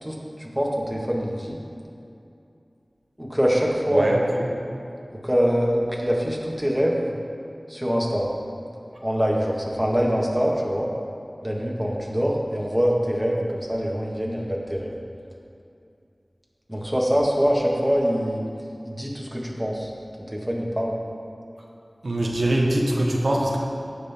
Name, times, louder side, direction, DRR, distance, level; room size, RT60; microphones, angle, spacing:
voice 1, 0.0-1.6 3.2-4.1 5.1-7.1 7.7-8.3 9.0-10.9 11.4-14.9 16.7-18.4 18.9-19.9 20.3-21.0, equal, 5° right, -3 dB, 1.8 m, -24 dB
voice 2, 3.9-4.5 22.0-23.6, right 1 dB, 90° right, -2 dB, 1.2 m, -22 dB
16.0 x 6.3 x 3.7 m, 2.6 s
wide cardioid pair, 55°, 0 cm